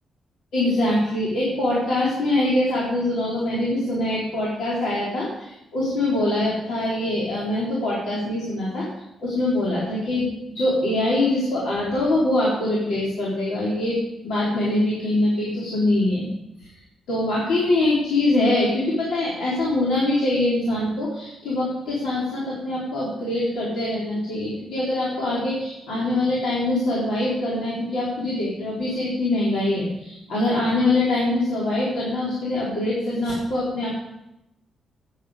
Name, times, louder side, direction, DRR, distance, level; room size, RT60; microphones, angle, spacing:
voice 1, 0.5-8.8 9.2-16.3 16.6-16.7 17.1-33.9, left 1 dB, 75° left, -6 dB, 4.1 m, -23 dB
14.5 x 9.4 x 5.1 m, 0.86 s
cardioid pair, 140°, 0 cm